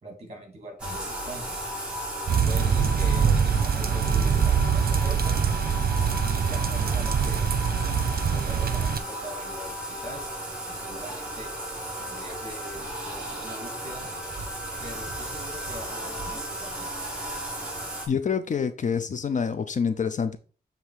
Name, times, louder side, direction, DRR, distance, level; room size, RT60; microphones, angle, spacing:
voice 1, 0.0-1.6 2.3-5.3 6.2-10.2 10.7-11.6 12.0-14.1 14.8-16.9, equal, 40° right, 2.9 m, -42 dB
Bathtub (filling or washing), 0.8-18.1, right 1 dB, 5° right, 2.2 m, -34 dB
sound 1, 2.3-9.0, right 7 dB, 75° right, 0.8 m, -24 dB
voice 2, 18.1-20.4, left 6 dB, 55° left, 0.6 m, -27 dB
7.4 x 3.5 x 5.0 m
wide cardioid pair, 140°, 16 cm